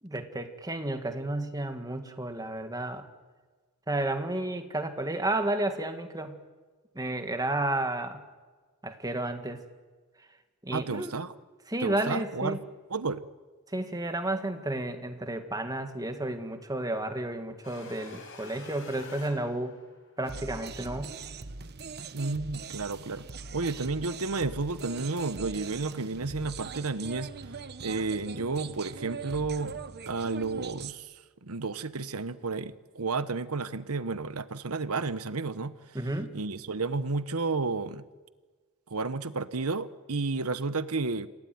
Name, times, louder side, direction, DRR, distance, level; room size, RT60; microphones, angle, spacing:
voice 1, 0.0-3.0 3.9-6.4 7.0-8.2 8.8-9.6 10.6-11.1 11.7-12.6 13.7-19.8 20.2-21.2 35.9-36.4, right 1 dB, 15° right, 7 dB, 2.0 m, -32 dB
voice 2, 10.7-11.3 11.8-12.6 12.9-13.2 20.8-20.9 22.1-23.2 23.5-27.3 27.8-29.8 30.1-31.2 31.4-36.0 36.3-38.0 38.9-41.3, right 3 dB, 70° right, 13 dB, 1.1 m, -32 dB
sound 1, 17.6-20.2, left 3 dB, 65° left, 5.9 m, -48 dB
sound 2, 20.2-30.9, right 4 dB, 50° right, 1.1 m, -41 dB
27.5 x 17.5 x 9.5 m, 1.4 s
head